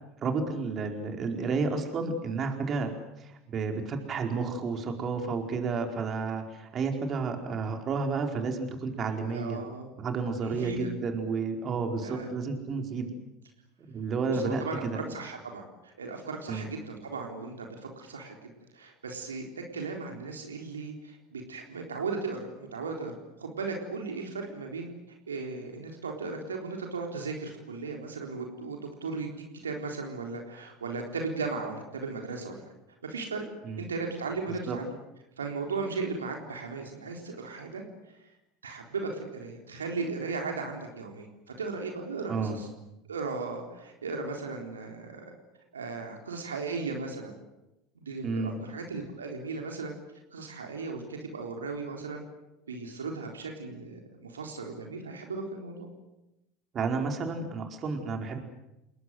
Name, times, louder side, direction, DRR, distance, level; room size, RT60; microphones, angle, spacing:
voice 1, 0.2-2.9 3.2-9.6 10.0-13.1 13.8-15.0 16.5-16.7 33.6-33.8 34.7-34.8 42.3-42.6 48.2-48.6 56.7-58.4, right 4 dB, 35° right, 4 dB, 4.7 m, -31 dB
voice 2, 9.3-9.9 10.4-10.9 12.0-12.3 14.3-17.7 18.0-24.9 25.3-32.6 33.0-33.5 33.8-34.9 35.4-37.8 38.2-38.3 38.6-41.3 41.6-42.7 43.1-45.3 45.7-47.3 48.0-49.9 50.3-52.2 52.7-55.9, right 4 dB, 80° right, 2 dB, 3.9 m, -36 dB
30.0 x 21.0 x 8.1 m, 0.92 s
figure-of-eight pair, 75°, 0 cm